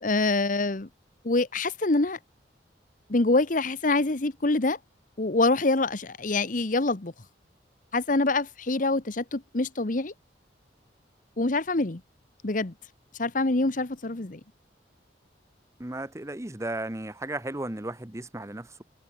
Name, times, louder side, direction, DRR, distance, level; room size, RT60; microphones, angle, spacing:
voice 1, 0.0-0.9 1.2-2.2 3.1-4.8 5.2-7.1 7.9-10.1 11.4-12.0 12.4-12.7 13.2-14.4, left 2 dB, 45° left, 1.1 m, -25 dB
voice 2, 15.8-18.8, right 1 dB, 15° right, 1.0 m, -35 dB
head